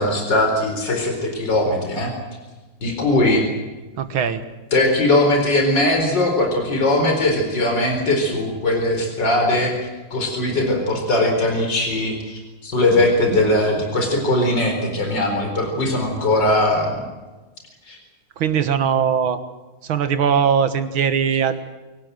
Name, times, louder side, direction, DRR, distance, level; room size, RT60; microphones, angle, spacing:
voice 1, 0.0-2.1 2.8-3.5 4.7-9.7 10.1-17.0 17.9-18.0, left 1 dB, 55° left, 3 dB, 5.0 m, -20 dB
voice 2, 4.0-4.4 18.4-19.4 19.9-21.6, right 7 dB, 75° right, 10 dB, 2.3 m, -20 dB
26.5 x 18.5 x 7.8 m, 1.2 s
omnidirectional pair, 2.3 m